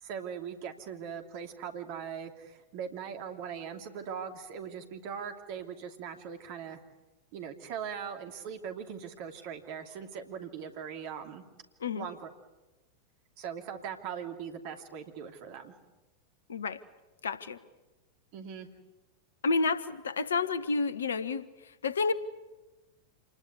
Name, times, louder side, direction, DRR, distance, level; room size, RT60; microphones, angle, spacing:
voice 1, 0.0-6.8 7.3-11.4 11.9-12.3 13.4-15.8 18.3-18.7, right 7 dB, 45° right, 6 dB, 2.8 m, -40 dB
voice 2, 16.5-16.8 17.2-17.6 19.4-22.1, left 4 dB, 70° left, 15 dB, 1.3 m, -30 dB
27.5 x 20.0 x 9.6 m, 1.1 s
figure-of-eight pair, 90°, 0 cm